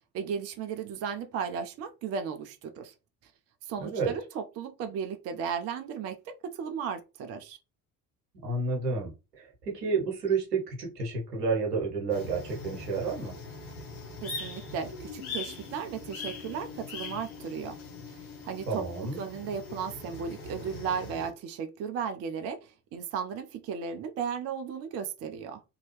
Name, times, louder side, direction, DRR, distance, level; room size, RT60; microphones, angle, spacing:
voice 1, 0.0-2.9 3.7-7.6 14.2-17.8 18.1-18.2 18.4-25.6, right 7 dB, 35° right, 0.5 m, -35 dB
voice 2, 3.8-4.1 8.4-13.3 18.7-19.2, right 4 dB, 80° right, 1.0 m, -30 dB
sound 1, 12.1-21.3, left 4 dB, 70° left, 1.0 m, -41 dB
2.7 x 2.3 x 3.0 m
figure-of-eight pair, 55°, 47 cm